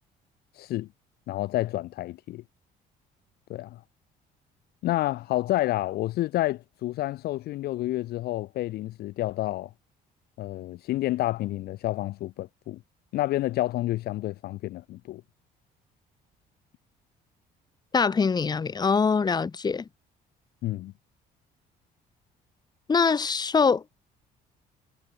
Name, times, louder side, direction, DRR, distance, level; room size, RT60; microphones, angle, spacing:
voice 1, 0.6-0.9 1.3-2.4 3.5-3.8 4.8-9.7 10.4-12.8 13.1-15.2 20.6-20.9, left 16 dB, 65° left, 0.6 m, -29 dB
voice 2, 17.9-19.8 22.9-23.8, left 5 dB, 25° left, 1.0 m, -23 dB
cardioid pair, 110°, 17 cm